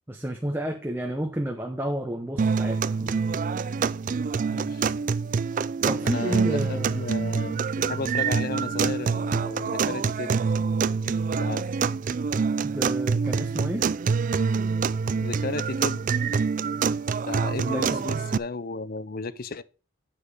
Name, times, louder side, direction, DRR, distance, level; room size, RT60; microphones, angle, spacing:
voice 1, 0.1-3.2 5.9-7.0 12.7-13.9 17.5-18.2, right 1 dB, 10° right, 0.8 m, -31 dB
sound 1, 2.4-18.4, right 5 dB, 40° right, 0.3 m, -26 dB
voice 2, 4.4-4.9 6.0-10.4 11.3-11.7 15.1-16.0 17.3-19.6, left 3 dB, 45° left, 0.5 m, -34 dB
10.5 x 7.3 x 3.5 m
head